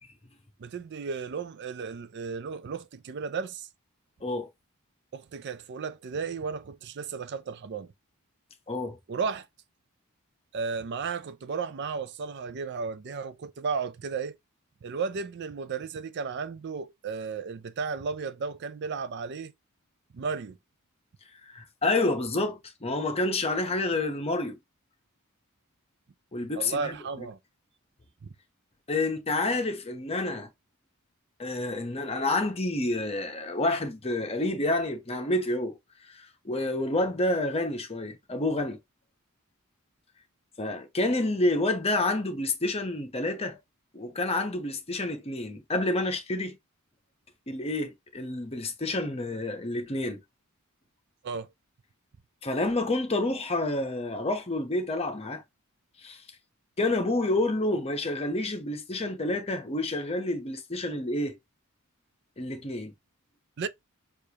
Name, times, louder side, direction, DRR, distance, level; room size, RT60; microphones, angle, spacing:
voice 1, 0.6-3.7 5.1-7.9 9.1-9.5 10.5-14.3 14.8-19.5 20.1-20.6 26.6-27.4 28.2-28.3 51.2-51.5 63.6-63.7, right 5 dB, 50° right, 0.4 m, -34 dB
voice 2, 8.7-9.0 21.5-24.6 26.3-27.3 28.9-30.5 31.4-35.8 36.1-38.8 40.6-43.6 43.9-46.6 47.5-50.2 52.4-55.4 56.0-56.2 56.8-61.4 62.4-62.9, left 2 dB, 30° left, 0.9 m, -29 dB
6.5 x 2.5 x 2.9 m
head